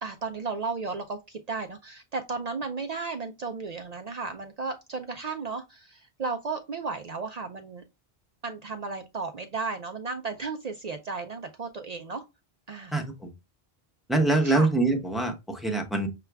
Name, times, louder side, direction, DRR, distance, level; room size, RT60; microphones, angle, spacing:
voice 1, 0.0-7.8 8.4-12.2 12.7-13.0 14.4-14.7, right 4 dB, 55° right, 0.5 m, -34 dB
voice 2, 12.9-13.3 14.1-16.1, right 2 dB, ahead, 0.7 m, -24 dB
6.7 x 2.4 x 3.3 m
omnidirectional pair, 1.0 m